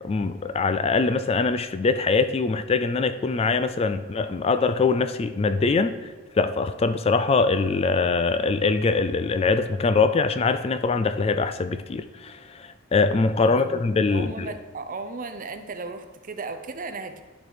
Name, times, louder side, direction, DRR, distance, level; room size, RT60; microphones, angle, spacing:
voice 1, 0.0-14.5, left 4 dB, 30° left, 11 dB, 0.3 m, -23 dB
voice 2, 13.4-17.2, right 3 dB, 40° right, 9 dB, 0.6 m, -36 dB
11.5 x 4.7 x 4.9 m, 1.3 s
head